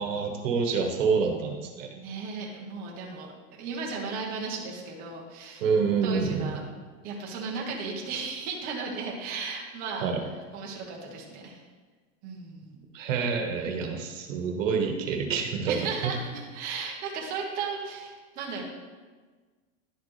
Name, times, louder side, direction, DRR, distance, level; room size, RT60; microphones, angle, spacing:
voice 1, 0.0-1.9 5.6-6.6 10.0-10.2 12.9-15.8, right 5 dB, 75° right, 3 dB, 1.3 m, -27 dB
voice 2, 1.9-3.3 3.6-5.6 6.0-6.6 7.0-10.1 10.5-11.6 12.2-12.8 15.7-18.6, right 4 dB, 25° right, -2 dB, 0.9 m, -35 dB
11.0 x 4.1 x 3.2 m, 1.4 s
supercardioid pair, 175°, 38 cm